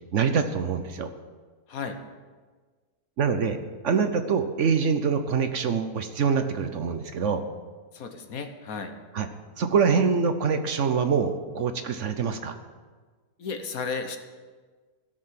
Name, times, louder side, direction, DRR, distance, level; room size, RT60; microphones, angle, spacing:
voice 1, 0.1-1.1 3.2-3.6 3.8-7.4 9.1-9.3 9.6-12.6, right 6 dB, 60° right, 8 dB, 1.0 m, -25 dB
voice 2, 7.9-8.9 13.4-14.2, left 5 dB, 65° left, 7 dB, 1.5 m, -33 dB
16.0 x 6.6 x 7.5 m, 1.4 s
omnidirectional pair, 1.6 m